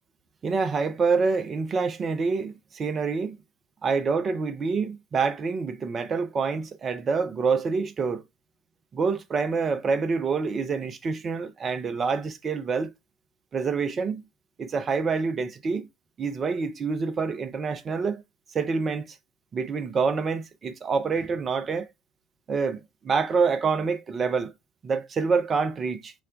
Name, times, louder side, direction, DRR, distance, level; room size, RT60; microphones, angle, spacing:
voice 1, 0.4-3.4 3.8-8.2 8.9-12.9 13.5-14.2 14.6-15.9 16.2-18.2 18.5-19.2 19.5-21.9 22.5-24.5 24.8-26.1, right 5 dB, 35° right, 0.5 m, -26 dB
2.4 x 2.1 x 3.6 m
figure-of-eight pair, 60°, 0 cm